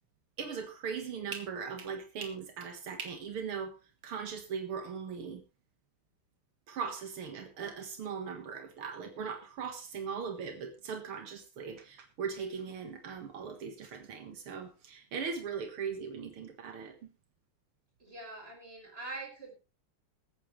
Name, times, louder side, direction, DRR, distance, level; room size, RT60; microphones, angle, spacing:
voice 1, 0.4-3.8 4.0-5.4 6.7-17.1, right 6 dB, 85° right, 6 dB, 2.5 m, -39 dB
voice 2, 18.0-19.5, right 2 dB, 25° right, 1 dB, 5.5 m, -44 dB
22.0 x 9.0 x 3.2 m, 0.29 s
omnidirectional pair, 2.3 m